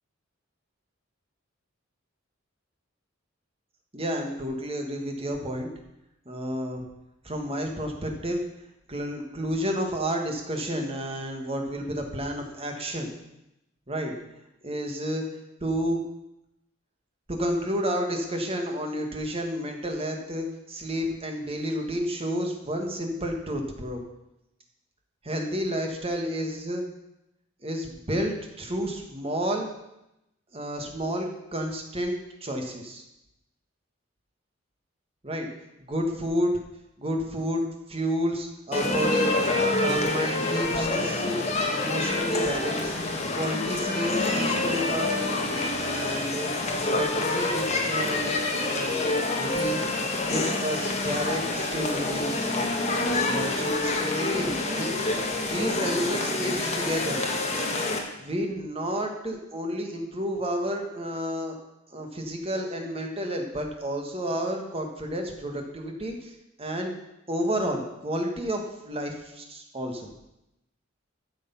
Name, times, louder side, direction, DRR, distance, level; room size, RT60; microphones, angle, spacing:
voice 1, 3.9-5.7 6.2-6.8 7.2-8.4 8.9-13.1 13.9-14.1 14.6-15.2 15.6-16.0 17.3-24.0 25.2-26.8 27.6-29.7 30.5-33.0 35.2-35.5 35.9-36.5 37.0-37.6 37.9-39.3 39.8-41.4 41.7-42.9 43.3-46.5 46.8-49.9 50.3-52.3 53.2-55.2 55.5-57.2 58.2-61.5 61.9-66.3 66.6-66.9 67.3-70.1, equal, 30° right, 2 dB, 1.6 m, -31 dB
sound 1, 38.7-58.0, left 2 dB, 35° left, 1.5 m, -27 dB
12.5 x 6.8 x 5.6 m, 0.89 s
head